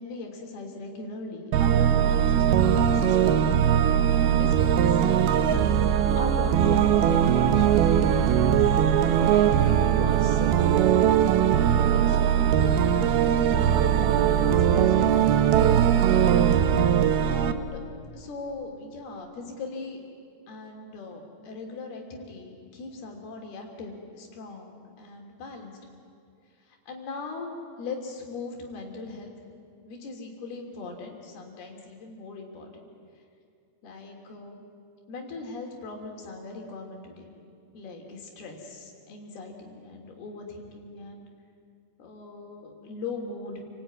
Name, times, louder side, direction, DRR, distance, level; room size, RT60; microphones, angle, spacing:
voice 1, 0.0-3.6 4.0-5.1 6.1-8.0 8.6-10.8 11.9-15.1 15.9-16.5 16.8-17.8 18.1-20.0 20.5-25.8 26.7-27.5 27.8-29.3 29.9-32.8 33.8-34.6 35.1-37.3 37.7-41.3 42.0-43.6, left 3 dB, 80° left, 1 dB, 5.1 m, -40 dB
sound 1, 1.5-17.5, right 9 dB, 80° right, 2.9 m, -20 dB
29.0 x 19.0 x 9.5 m, 2.4 s
omnidirectional pair, 4.5 m